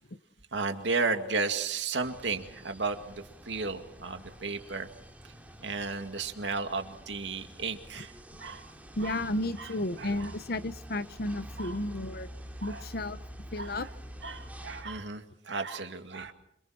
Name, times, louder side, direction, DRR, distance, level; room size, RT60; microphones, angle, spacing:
voice 1, 0.5-4.9 5.2-5.3 5.6-8.7 9.0-9.2 9.6-10.3 11.6-11.8 12.6-12.8 13.6-13.9 14.2-16.3, right 4 dB, 90° right, 7 dB, 2.2 m, -34 dB
sound 1, 2.0-14.8, equal, 10° right, 3.0 m, -47 dB
voice 2, 9.0-12.3 12.6-13.9, left 1 dB, 60° left, 14 dB, 1.0 m, -33 dB
28.0 x 26.5 x 4.4 m, 0.75 s
head